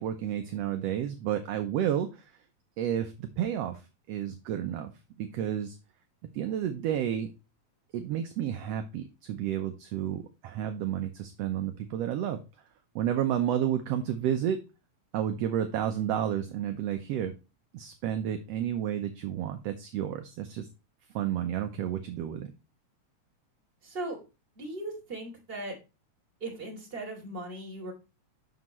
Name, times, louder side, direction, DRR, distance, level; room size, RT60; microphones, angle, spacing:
voice 1, 0.0-2.3 2.8-3.8 4.1-4.9 5.2-5.8 6.3-7.3 7.9-12.4 12.9-14.6 15.1-17.3 17.7-20.7 21.1-22.5, right 10 dB, 70° right, 6 dB, 1.7 m, -31 dB
voice 2, 23.8-24.2 24.6-25.8 26.4-27.9, right 2 dB, 20° right, 0 dB, 2.8 m, -38 dB
7.5 x 6.7 x 3.0 m, 0.28 s
omnidirectional pair, 3.3 m